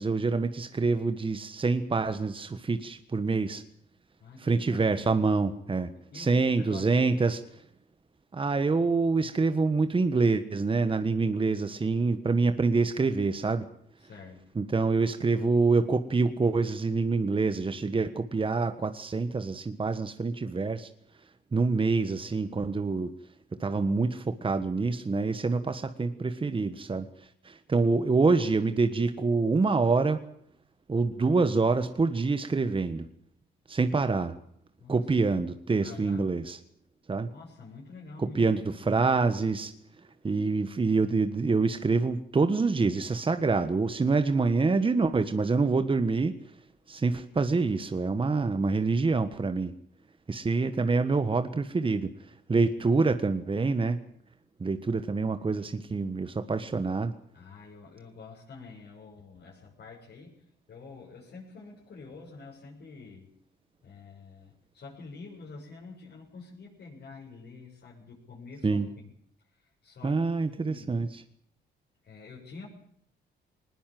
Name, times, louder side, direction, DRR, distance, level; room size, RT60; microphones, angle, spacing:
voice 1, 0.0-3.6 4.4-5.9 6.1-7.4 8.3-13.7 14.5-20.9 21.5-23.1 23.6-27.1 27.4-30.2 30.9-33.1 33.7-34.3 34.9-36.6 37.1-37.3 38.2-39.7 40.2-46.3 46.9-49.7 50.3-52.1 52.5-54.0 54.6-57.1 68.6-68.9 70.0-71.2, right 4 dB, 25° right, 9 dB, 1.5 m, -26 dB
voice 2, 4.2-4.9 5.9-7.3 14.0-14.5 34.8-35.2 35.8-36.3 37.3-39.0 57.3-63.3 63.8-69.2 69.5-71.0 72.0-72.7, left 4 dB, 55° left, -5 dB, 7.8 m, -47 dB
20.5 x 20.0 x 7.8 m, 0.67 s
cardioid pair, 90°, 20 cm